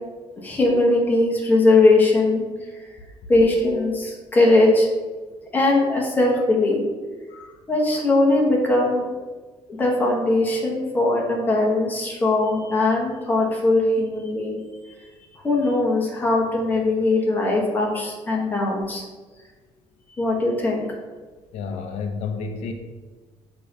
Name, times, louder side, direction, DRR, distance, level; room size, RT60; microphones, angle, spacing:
voice 1, 0.4-2.4 3.3-4.9 5.5-6.9 7.7-9.0 9.8-14.6 15.4-19.0 20.2-20.9, left 2 dB, 15° left, -2 dB, 1.2 m, -20 dB
voice 2, 7.3-7.6 21.5-22.7, left 5 dB, 80° left, 5 dB, 0.6 m, -31 dB
6.5 x 3.0 x 5.3 m, 1.3 s
cardioid pair, 170°, 11 cm